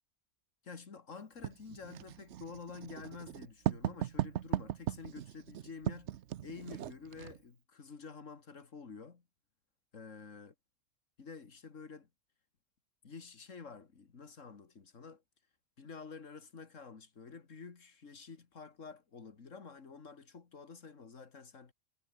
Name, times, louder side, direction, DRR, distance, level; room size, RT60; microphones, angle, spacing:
voice 1, 0.6-6.2 6.4-9.2 9.9-10.5 11.2-12.1 13.0-15.2 15.8-21.7, left 5 dB, 85° left, 2.4 m, -49 dB
Writing, 1.4-7.4, right 11 dB, 70° right, 1.0 m, -38 dB
omnidirectional pair, 1.3 m